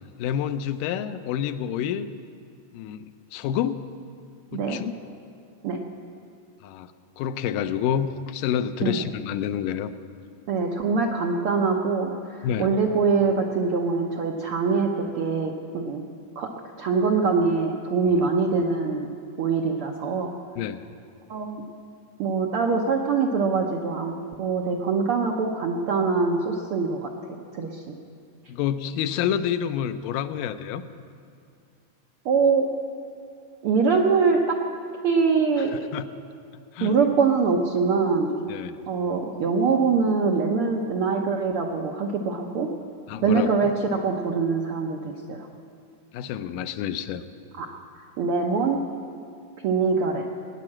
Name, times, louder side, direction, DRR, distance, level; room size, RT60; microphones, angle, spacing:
voice 1, 0.2-2.1 2.7-3.8 4.5-4.9 6.6-9.9 12.4-12.7 20.6-20.8 28.5-30.8 35.7-36.1 36.7-37.0 38.5-38.8 43.1-43.7 46.1-47.2, left 9 dB, 85° left, 12 dB, 2.3 m, -28 dB
voice 2, 10.5-16.0 16.4-16.5 16.8-19.1 19.4-20.3 21.3-21.6 22.2-27.1 27.5-28.0 32.2-32.7 33.6-34.6 35.0-35.7 36.8-38.4 38.9-42.7 43.2-45.5 47.6-47.7 48.2-48.8 49.6-50.2, right 4 dB, 90° right, 0 dB, 1.2 m, -23 dB
19.0 x 9.6 x 7.4 m, 2.4 s
omnidirectional pair, 3.8 m